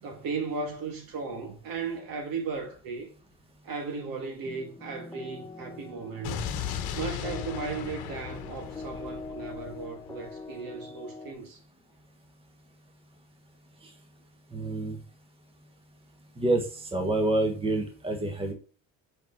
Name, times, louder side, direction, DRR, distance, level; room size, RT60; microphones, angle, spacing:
voice 1, 0.0-3.1 3.6-6.5 7.0-11.6, right 4 dB, 60° right, 1.8 m, -36 dB
sound 1, 4.4-11.3, left 3 dB, 10° left, 0.5 m, -43 dB
Explosion, 6.2-10.3, left 8 dB, 65° left, 1.1 m, -37 dB
voice 2, 14.5-15.0 16.4-18.5, right 2 dB, 15° right, 1.4 m, -27 dB
5.0 x 4.8 x 4.5 m
cardioid pair, 115°, 38 cm